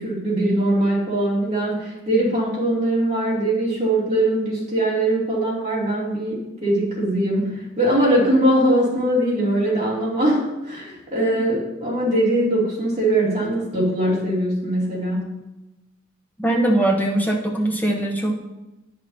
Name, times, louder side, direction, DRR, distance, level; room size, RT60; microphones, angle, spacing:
voice 1, 0.0-15.3, right 1 dB, 35° right, -7 dB, 2.8 m, -21 dB
voice 2, 16.4-18.4, right 1 dB, 10° left, 0 dB, 0.8 m, -21 dB
9.8 x 6.2 x 2.8 m, 1.0 s
head